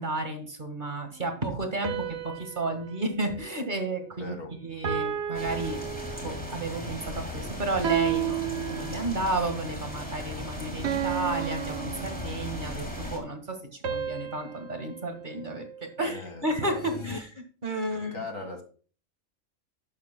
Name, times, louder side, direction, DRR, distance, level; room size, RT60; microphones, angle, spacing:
voice 1, 0.0-4.4 4.6-5.8 6.2-13.6 13.9-17.3 17.6-18.2, right 2 dB, 35° right, 1.9 m, -32 dB
sound 1, 1.8-4.3 4.8-6.6 7.8-9.4 10.8-12.7 13.8-16.2, right 10 dB, 60° right, 1.2 m, -34 dB
voice 2, 4.2-4.5 16.0-17.0 17.9-18.6, left 2 dB, 80° left, 2.3 m, -40 dB
sound 2, 5.3-13.2, left 1 dB, 5° left, 2.8 m, -37 dB
sound 3, 16.6-17.2, left 4 dB, 35° left, 0.5 m, -38 dB
11.0 x 11.0 x 2.2 m
omnidirectional pair, 1.4 m